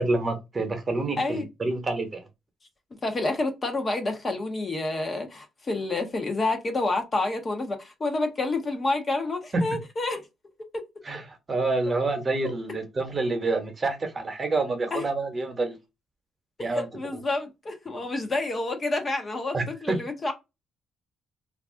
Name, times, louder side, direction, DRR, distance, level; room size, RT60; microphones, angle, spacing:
voice 1, 0.0-2.2 9.5-9.6 11.0-15.8 16.6-16.9 19.5-20.0, right 3 dB, 30° right, 0.9 m, -27 dB
voice 2, 3.0-10.2 10.7-10.8 14.9-15.0 16.7-20.3, left 2 dB, 35° left, 0.7 m, -29 dB
2.4 x 2.3 x 3.5 m
cardioid pair, 90°, 0 cm